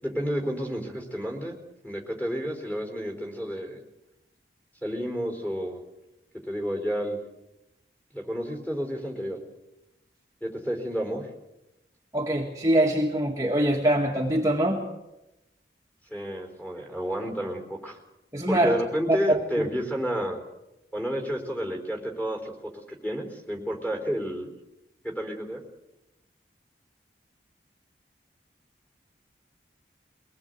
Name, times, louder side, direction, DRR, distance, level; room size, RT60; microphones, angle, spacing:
voice 1, 0.0-1.6 1.8-3.8 4.8-5.8 6.5-7.2 8.1-9.4 10.4-11.2 16.1-18.0 18.5-20.4 20.9-22.5 22.9-24.5 25.0-25.6, equal, 10° left, 1 dB, 4.4 m, -30 dB
voice 2, 12.1-14.8 18.3-18.7 19.1-19.7, right 1 dB, 20° right, -1 dB, 2.0 m, -23 dB
23.5 x 19.0 x 8.2 m, 0.94 s
head